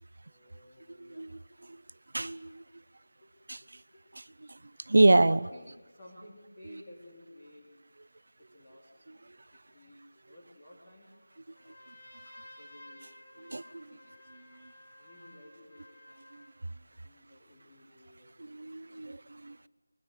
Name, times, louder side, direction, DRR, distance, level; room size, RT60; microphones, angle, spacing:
voice 1, 0.2-1.3 3.2-3.3 3.6-4.2 4.9-7.7 8.4-11.8 12.6-13.5 13.9-15.8 17.0-18.3 18.8-19.1, left 1 dB, 20° left, -4 dB, 3.1 m, -55 dB
voice 2, 2.1-2.6 3.5-3.6 4.4-4.5 4.9-5.4 13.4-14.0 16.3-16.4 18.4-19.6, right 2 dB, 50° right, 17 dB, 0.7 m, -26 dB
Trumpet, 11.5-16.6, left 1 dB, 50° left, 7.6 m, -54 dB
24.5 x 21.0 x 8.1 m, 1.2 s
figure-of-eight pair, 175°, 0 cm